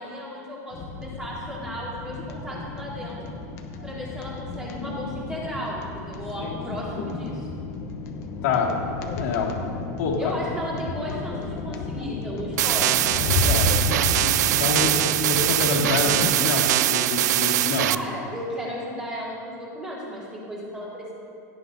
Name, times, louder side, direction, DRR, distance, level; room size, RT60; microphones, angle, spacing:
voice 1, 0.0-3.3 3.8-7.5 10.2-13.3 17.9-21.1, equal, 10° right, -6 dB, 1.9 m, -34 dB
sound 1, 0.7-16.3, left 3 dB, 30° left, 0.8 m, -32 dB
voice 2, 8.4-8.7 9.2-9.5 10.0-10.3 13.4-13.8 14.2-17.9, left 4 dB, 60° left, -3 dB, 2.2 m, -26 dB
sound 2, 12.6-18.0, right 14 dB, 80° right, 0.3 m, -22 dB
17.0 x 10.0 x 2.7 m, 2.4 s
supercardioid pair, 170°, 9 cm